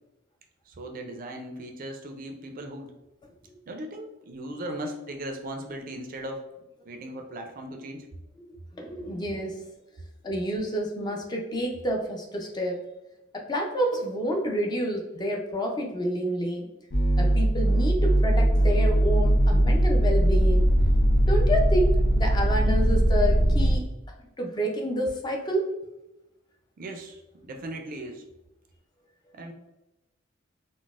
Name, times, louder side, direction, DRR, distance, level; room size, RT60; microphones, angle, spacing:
voice 1, 0.7-2.9 3.7-6.4 6.9-8.1 20.8-20.9 26.8-28.3 29.3-29.5, right 1 dB, 45° right, 4 dB, 0.4 m, -37 dB
voice 2, 8.7-9.7 10.2-12.8 13.3-16.7 17.2-20.7 21.3-23.9 24.4-25.7, equal, 20° left, 1 dB, 0.4 m, -29 dB
sound 1, 16.9-23.8, right 1 dB, 50° left, 0.7 m, -20 dB
3.9 x 2.0 x 2.3 m, 0.97 s
head